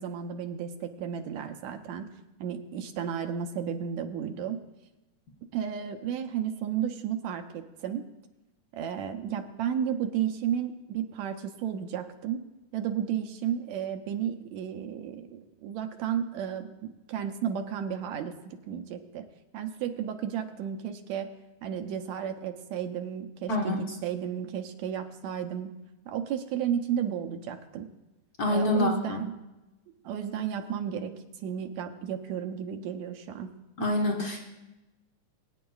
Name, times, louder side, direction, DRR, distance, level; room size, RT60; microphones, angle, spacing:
voice 1, 0.0-2.1 2.4-4.6 5.5-8.1 8.7-12.4 12.7-19.3 19.5-21.3 21.6-25.7 26.1-27.9 28.5-29.4 30.1-31.1 31.4-33.5, right 9 dB, 75° right, 6 dB, 1.9 m, -33 dB
voice 2, 28.4-29.2 33.8-34.4, left 2 dB, 85° left, 0 dB, 0.8 m, -26 dB
22.5 x 9.6 x 2.3 m, 1.0 s
omnidirectional pair, 3.4 m